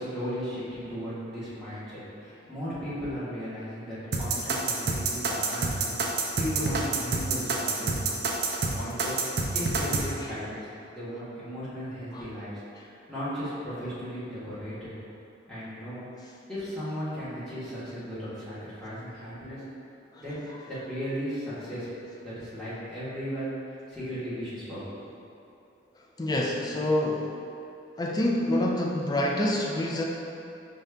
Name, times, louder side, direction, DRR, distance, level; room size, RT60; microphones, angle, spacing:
voice 1, 0.0-8.1 8.7-12.5 12.8-14.9 15.5-16.0 16.5-19.6 20.2-20.4 20.7-21.9 22.2-23.5 23.9-25.2, equal, 5° left, -13 dB, 1.3 m, -36 dB
sound 1, 4.1-10.1, right 4 dB, 55° right, 0.5 m, -27 dB
voice 2, 26.2-27.4 28.0-30.0, left 1 dB, 20° left, -1 dB, 0.3 m, -27 dB
5.3 x 2.5 x 3.4 m, 2.8 s
head